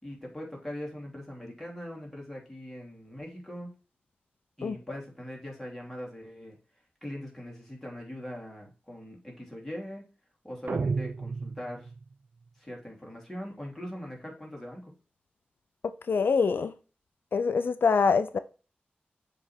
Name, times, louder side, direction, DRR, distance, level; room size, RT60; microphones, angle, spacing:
voice 1, 0.0-3.7 4.6-6.6 7.0-10.0 10.4-11.9 12.6-14.9, equal, 5° left, 2.7 m, -41 dB
sound 1, 10.7-12.1, right 4 dB, 65° right, 0.4 m, -32 dB
voice 2, 15.8-16.7 17.3-18.4, left 5 dB, 80° left, 0.4 m, -25 dB
7.1 x 3.3 x 4.3 m
wide cardioid pair, 85°, 4 cm